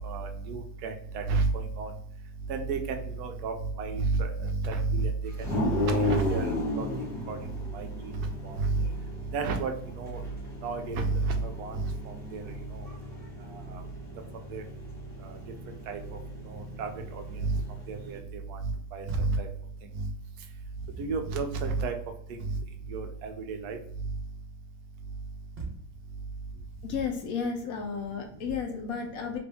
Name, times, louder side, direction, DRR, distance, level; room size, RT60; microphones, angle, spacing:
voice 1, 0.0-1.9 2.5-5.1 5.7-6.9 7.3-7.4 7.7-7.9 8.4-8.8 9.3-9.7 10.0-10.2 10.6-12.4 12.7-12.8 13.7-13.8 14.5-14.6 15.2-15.3 15.9-16.2 16.5-17.6 17.9-18.6 18.9-19.5 20.0-20.1 21.0-21.9 22.9-23.8, right 3 dB, 75° right, 5 dB, 1.1 m, -31 dB
sound 1, 5.4-18.2, left 1 dB, 5° right, 1.2 m, -35 dB
sound 2, 19.1-19.5 20.4-21.4 25.6-25.9 26.5-27.3, right 2 dB, 45° right, 1.0 m, -41 dB
voice 2, 26.8-29.4, left 6 dB, 70° left, 4 dB, 0.9 m, -33 dB
3.0 x 2.6 x 3.4 m, 0.65 s
omnidirectional pair, 1.8 m